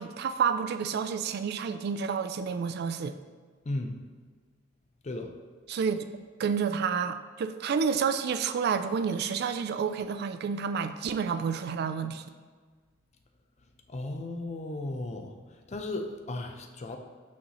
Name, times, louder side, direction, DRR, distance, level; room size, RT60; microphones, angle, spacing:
voice 1, 0.0-3.1 5.7-6.0 6.4-12.2, right 6 dB, 55° right, 10 dB, 0.3 m, -29 dB
voice 2, 3.7-4.0 5.0-5.3 13.9-15.3 15.7-17.0, left 2 dB, 35° left, 4 dB, 0.5 m, -35 dB
6.2 x 5.4 x 2.9 m, 1.5 s
head